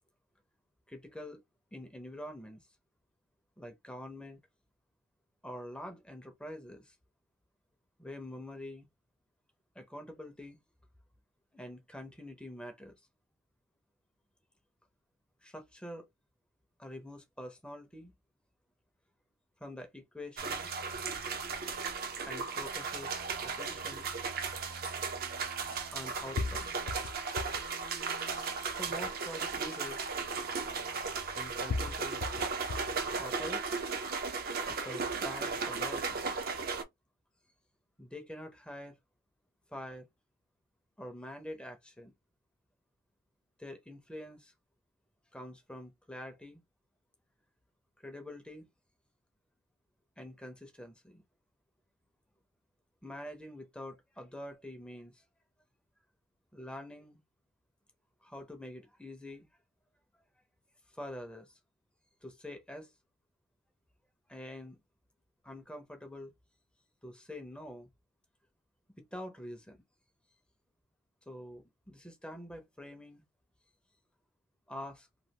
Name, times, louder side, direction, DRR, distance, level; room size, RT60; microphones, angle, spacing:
voice 1, 0.9-1.4 1.7-2.7 3.6-4.4 5.4-7.0 8.0-8.9 9.8-10.6 11.5-12.9 15.4-16.1 16.8-18.1 19.6-20.7 22.2-24.1 25.9-26.9 28.8-30.0 31.3-32.3 33.2-33.6 34.7-36.3 38.0-39.0 39.7-40.1 41.0-42.1 43.6-44.5 45.3-46.6 48.0-48.7 50.2-51.2 53.0-55.2 56.5-57.2 58.2-59.5 60.9-61.6 62.2-62.9 64.3-64.8 65.4-66.3 67.0-67.9 69.0-69.8 71.3-73.2 74.7-75.1, left 1 dB, 5° left, 0.5 m, -46 dB
sound 1, 20.4-36.8, right 4 dB, 45° right, 0.5 m, -36 dB
sound 2, 24.4-24.5 25.7-25.8 26.4-27.7 28.2-28.8 29.7-29.8 31.0-31.1 31.7-33.0 33.5-34.1, left 4 dB, 70° left, 0.4 m, -38 dB
3.1 x 2.3 x 2.8 m
head